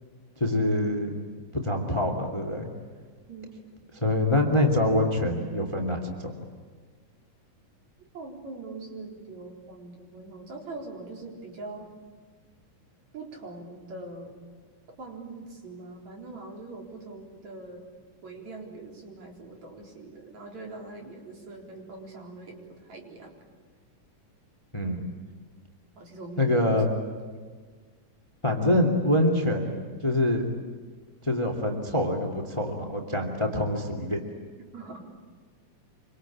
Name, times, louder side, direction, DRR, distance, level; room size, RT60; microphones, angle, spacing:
voice 1, 0.4-1.2 1.5-2.7 3.9-6.3 24.7-25.1 26.4-26.9 28.4-29.8 30.0-30.5 31.2-34.2, left 1 dB, 10° left, 3 dB, 2.4 m, -25 dB
voice 2, 8.1-11.9 13.1-14.3 15.0-17.8 18.2-23.3 26.0-26.7 34.7-35.0, right 2 dB, 60° right, 0 dB, 5.4 m, -42 dB
26.5 x 25.0 x 8.7 m, 1.5 s
omnidirectional pair, 3.7 m